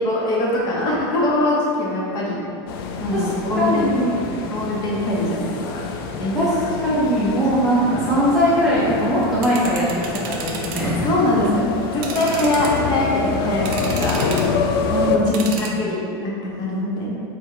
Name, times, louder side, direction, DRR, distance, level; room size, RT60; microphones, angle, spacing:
voice 1, 0.0-2.5 3.0-3.9 4.5-5.9 6.2-6.4 7.2-7.3 11.0-14.6 15.1-17.2, left 1 dB, 30° left, -4 dB, 0.7 m, -23 dB
sound 1, 2.7-15.2, left 5 dB, 65° left, 0.4 m, -27 dB
voice 2, 3.6-4.3 6.3-6.5 6.8-9.9 10.3-11.1 14.9-15.8, equal, ahead, -10 dB, 0.4 m, -20 dB
sound 2, 9.1-10.9 11.3-11.5 11.9-13.0 13.5-14.6 15.3-15.7, right 5 dB, 60° right, 0.5 m, -33 dB
3.6 x 2.2 x 4.4 m, 2.5 s
supercardioid pair, 160°, 13 cm